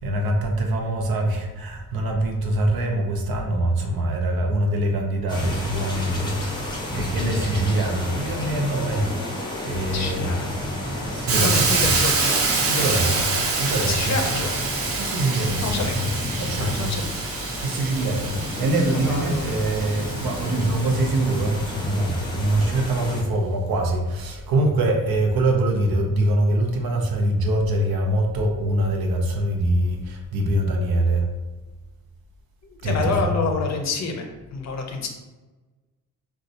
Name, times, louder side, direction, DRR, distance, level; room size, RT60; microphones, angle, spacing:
voice 1, 0.0-9.1 9.6-10.3 11.1-11.9 12.8-13.2 13.6-14.2 15.0-16.1 16.4-16.9 17.5-31.3 32.8-33.4, right 1 dB, 80° right, 2 dB, 0.7 m, -24 dB
sound 1, 5.3-23.2, left 1 dB, 10° left, 0.6 m, -31 dB
voice 2, 9.9-10.5 10.9-11.0 11.3-13.0 13.8-14.7 15.6-16.0 16.6-17.1 18.8-19.6 32.6-35.1, left 3 dB, 50° left, 3 dB, 0.5 m, -28 dB
Hiss, 11.3-21.2, right 4 dB, 40° right, 0.5 m, -26 dB
2.6 x 2.3 x 4.0 m, 1.2 s
wide cardioid pair, 150°, 36 cm